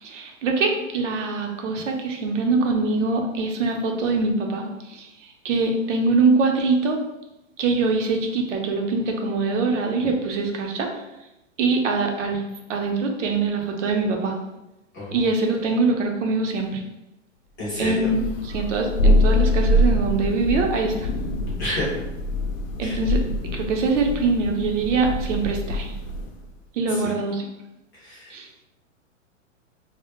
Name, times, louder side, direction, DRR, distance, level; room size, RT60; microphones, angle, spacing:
voice 1, 0.0-5.1 5.4-7.0 7.6-10.9 11.6-12.4 12.7-14.3 15.1-16.8 17.8-21.1 22.8-23.2 23.5-25.9 26.8-27.5 28.3-28.5, right 3 dB, 70° right, 2 dB, 0.6 m, -23 dB
voice 2, 14.9-15.3 17.6-18.1 21.6-22.0 22.8-23.0 26.9-27.2 28.0-28.4, left 1 dB, 15° left, -8 dB, 0.3 m, -30 dB
Thunder, 18.0-26.4, left 1 dB, 90° left, 0.6 m, -24 dB
2.1 x 2.0 x 2.9 m, 0.94 s
hypercardioid pair, 140°, 38 cm